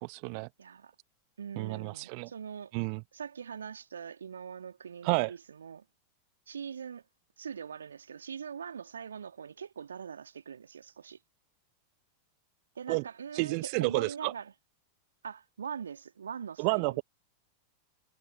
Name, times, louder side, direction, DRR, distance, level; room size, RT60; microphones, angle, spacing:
voice 1, 0.0-0.5 1.6-2.3 2.7-3.0 5.0-5.3 12.9-13.0 13.3-14.3 16.6-17.0, right 40 dB or more, 45° right, 1.1 m, -30 dB
voice 2, 0.6-0.9 1.4-2.7 3.1-5.8 6.5-7.0 7.4-11.2 12.7-14.5 15.2-17.0, right 7 dB, 70° right, 2.9 m, -42 dB
figure-of-eight pair, 90°, 0 cm